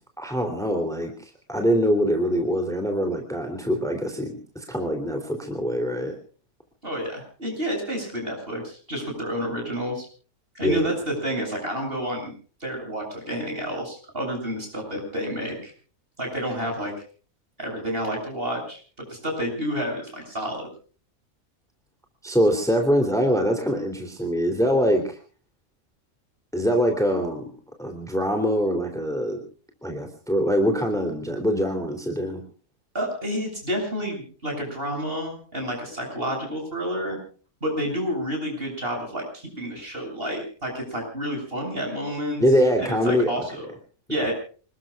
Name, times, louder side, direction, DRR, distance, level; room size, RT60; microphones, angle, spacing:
voice 1, 0.2-6.2 10.6-10.9 22.2-25.2 26.5-27.4 27.8-29.4 29.8-32.4 42.4-43.4, equal, ahead, 4 dB, 3.2 m, -23 dB
voice 2, 6.8-10.1 10.5-12.3 12.6-15.7 16.2-16.9 17.6-18.8 19.1-20.6 32.9-37.2 37.6-42.4 42.8-43.7 44.1-44.3, equal, 40° right, 2 dB, 8.2 m, -29 dB
28.0 x 20.5 x 2.4 m, 0.41 s
omnidirectional pair, 1.5 m